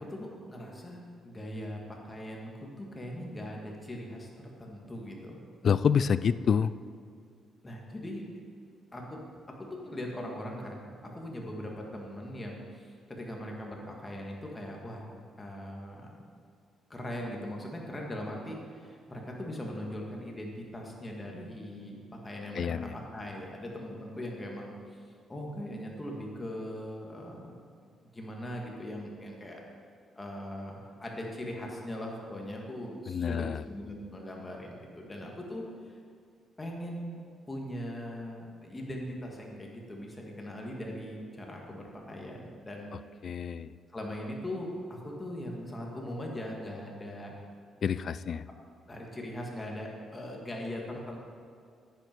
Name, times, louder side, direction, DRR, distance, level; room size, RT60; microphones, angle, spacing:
voice 1, 0.0-5.4 7.6-8.2 8.9-9.2 9.6-10.8 11.1-15.1 15.4-16.0 16.9-25.0 25.3-27.5 27.8-29.6 30.2-35.6 36.6-37.2 37.5-42.9 43.9-47.3 48.9-51.2, left 1 dB, 20° left, -1 dB, 2.1 m, -40 dB
voice 2, 5.6-6.7 22.5-22.9 33.1-33.6 43.2-43.7 47.8-48.4, left 7 dB, 55° left, 15 dB, 0.3 m, -27 dB
10.5 x 8.9 x 4.7 m, 2.2 s
cardioid pair, 90°, 0 cm